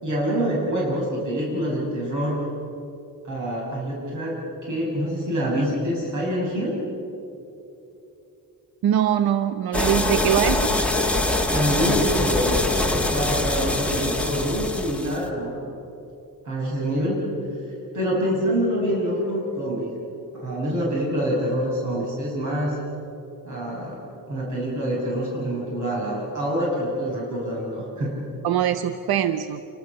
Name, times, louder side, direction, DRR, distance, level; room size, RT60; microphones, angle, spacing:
voice 1, 0.0-2.4 3.2-6.8 11.5-15.7 16.4-17.2 17.9-19.9 20.3-22.8 23.4-24.0 24.3-28.2, equal, 55° right, -5 dB, 6.4 m, -26 dB
voice 2, 8.8-10.7 28.4-29.6, right 10 dB, 90° right, 10 dB, 0.9 m, -22 dB
sound 1, 9.7-15.2, left 2 dB, 5° left, 1.4 m, -23 dB
28.5 x 24.0 x 6.6 m, 2.8 s
wide cardioid pair, 170°, 36 cm